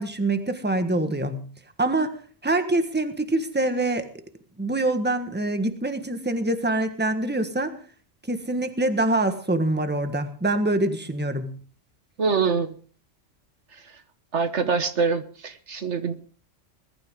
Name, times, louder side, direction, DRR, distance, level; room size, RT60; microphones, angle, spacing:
voice 1, 0.0-1.4 1.8-2.2 2.4-4.1 4.6-7.8 8.3-11.5, right 2 dB, 10° right, 8 dB, 1.4 m, -25 dB
voice 2, 12.2-12.7 14.3-16.1, right 5 dB, 70° right, 10 dB, 1.5 m, -24 dB
21.0 x 13.0 x 3.7 m, 0.42 s
omnidirectional pair, 1.3 m